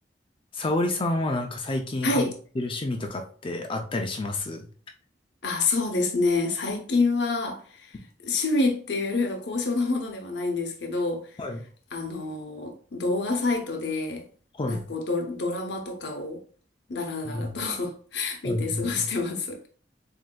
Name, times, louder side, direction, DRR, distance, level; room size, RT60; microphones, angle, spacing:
voice 1, 0.5-2.2 2.6-4.7 11.4-11.6 14.5-14.8 17.2-17.6 18.4-19.1, left 2 dB, 30° left, 0.4 m, -29 dB
voice 2, 2.0-2.4 5.4-7.9 8.2-11.3 11.9-14.2 14.7-16.4 16.9-19.6, left 3 dB, 70° left, 0.7 m, -27 dB
7.4 x 2.6 x 2.2 m
head